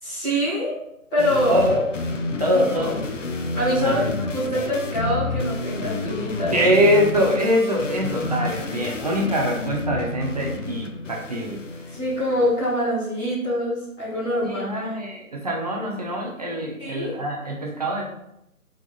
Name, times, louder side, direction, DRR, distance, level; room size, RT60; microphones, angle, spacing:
voice 1, 0.0-0.8 1.1-1.6 2.5-2.9 3.5-6.6 11.9-14.9 16.8-17.1, equal, 5° left, -14 dB, 0.8 m, -25 dB
sound 1, 1.2-12.7, left 3 dB, 55° left, 0.9 m, -30 dB
voice 2, 1.5-1.8 2.4-3.0 3.8-4.1 6.5-11.6 14.4-18.0, equal, 25° right, -1 dB, 0.8 m, -23 dB
6.0 x 5.0 x 4.1 m, 0.82 s
figure-of-eight pair, 145°, 44 cm